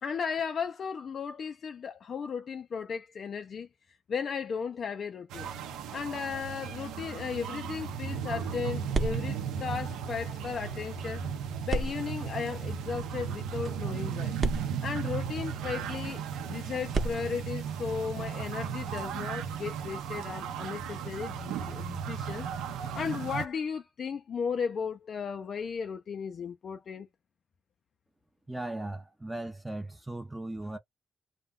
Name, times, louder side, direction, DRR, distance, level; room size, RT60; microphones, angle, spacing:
voice 1, 0.0-3.7 4.1-5.5 5.9-11.2 11.6-14.4 14.8-22.5 22.9-27.1, left 6 dB, 50° left, 0.4 m, -35 dB
sound 1, 5.3-23.5, right 7 dB, 90° right, 0.6 m, -36 dB
sound 2, 11.7-15.6 16.8-23.5, right 3 dB, 40° right, 0.8 m, -39 dB
voice 2, 28.5-30.8, right 2 dB, 10° right, 0.5 m, -37 dB
2.2 x 2.2 x 3.6 m
cardioid pair, 90°, 0 cm